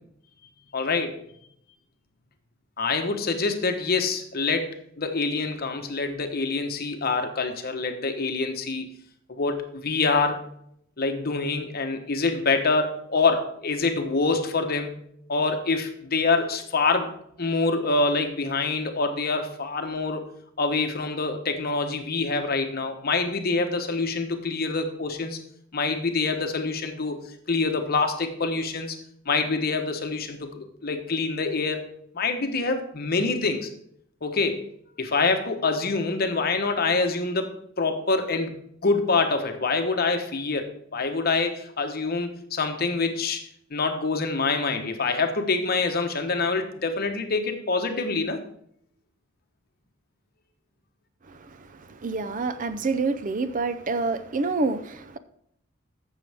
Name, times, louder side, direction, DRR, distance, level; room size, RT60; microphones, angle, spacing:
voice 1, 0.7-1.2 2.8-8.9 9.3-10.4 11.0-15.0 15.3-17.1 17.4-20.3 20.6-25.4 25.7-27.2 27.5-29.0 29.2-31.8 32.1-33.7 34.2-34.7 35.0-37.5 37.8-38.6 38.8-48.4, left 3 dB, 50° left, 1.1 m, -26 dB
voice 2, 51.3-55.2, right 3 dB, 40° right, 0.5 m, -28 dB
14.5 x 6.4 x 3.5 m
head